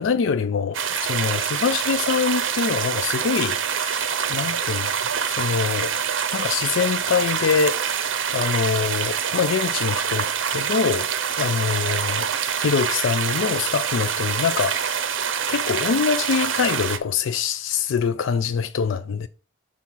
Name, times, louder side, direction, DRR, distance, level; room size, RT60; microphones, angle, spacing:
voice 1, 0.0-5.0 5.3-5.9 6.3-11.1 11.4-15.1 15.5-19.3, left 6 dB, 75° left, 0.4 m, -24 dB
sound 1, 0.7-17.0, right 7 dB, 75° right, 0.6 m, -25 dB
6.0 x 3.6 x 5.5 m
head